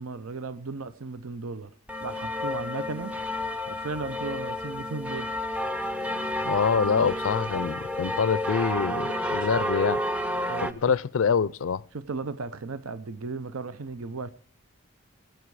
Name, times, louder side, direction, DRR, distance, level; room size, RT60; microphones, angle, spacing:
voice 1, 0.0-1.7 2.0-3.2 3.7-5.3 10.5-10.8 11.9-14.3, right 4 dB, 90° right, 0.7 m, -35 dB
sound 1, 1.9-10.7, left 1 dB, 5° right, 0.4 m, -30 dB
voice 2, 6.4-10.0 10.8-11.8, left 6 dB, 75° left, 0.4 m, -25 dB
21.0 x 8.0 x 4.7 m
head